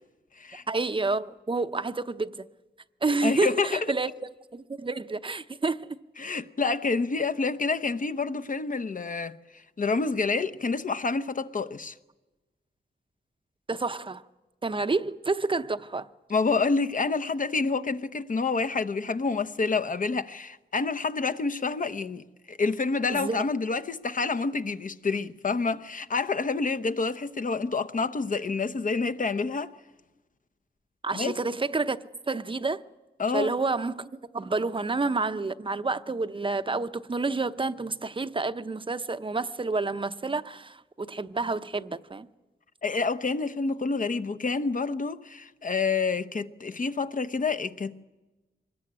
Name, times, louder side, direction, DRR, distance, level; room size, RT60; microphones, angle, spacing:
voice 1, 0.7-2.4 3.0-4.1 4.5-6.0 13.7-14.2 14.6-16.1 23.1-23.4 31.0-32.8 33.3-42.3, right 3 dB, 30° right, 0.7 m, -29 dB
voice 2, 3.2-3.9 6.2-11.9 16.3-29.7 31.1-31.4 33.2-33.5 42.8-48.0, left 4 dB, 45° left, 0.9 m, -28 dB
24.5 x 20.5 x 8.7 m
wide cardioid pair, 100°, 18 cm